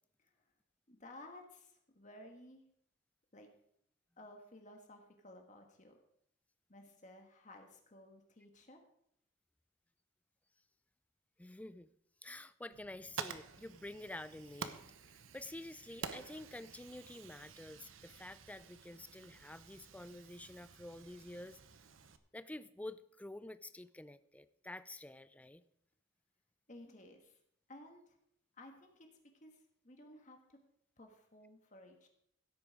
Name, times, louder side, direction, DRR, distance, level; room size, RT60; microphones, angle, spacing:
voice 1, 0.9-2.6 3.3-3.5 4.2-6.0 6.7-8.8 26.7-27.4 27.7-28.2 28.5-29.1 29.4-30.6 31.0-32.1, left 1 dB, 35° left, 3 dB, 1.4 m, -56 dB
voice 2, 11.4-11.9 12.2-14.8 15.1-21.6 22.3-25.6, left 1 dB, 5° left, 14 dB, 0.4 m, -49 dB
Fire, 12.7-22.2, right 5 dB, 80° right, 0.9 m, -50 dB
16.0 x 8.6 x 4.8 m, 0.70 s
head